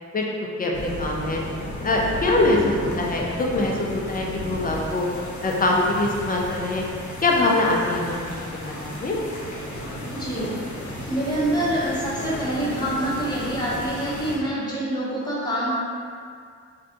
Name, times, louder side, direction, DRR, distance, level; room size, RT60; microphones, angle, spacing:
voice 1, 0.6-1.4 1.8-5.1 5.4-6.8 7.2-9.2, left 2 dB, 30° left, -1 dB, 0.4 m, -23 dB
sound 1, 0.7-14.4, equal, 70° left, 0.7 m, -34 dB
voice 2, 10.1-10.5 11.1-15.7, right 1 dB, 15° left, -9 dB, 0.8 m, -26 dB
2.6 x 2.3 x 3.8 m, 2.2 s
wide cardioid pair, 125°, 31 cm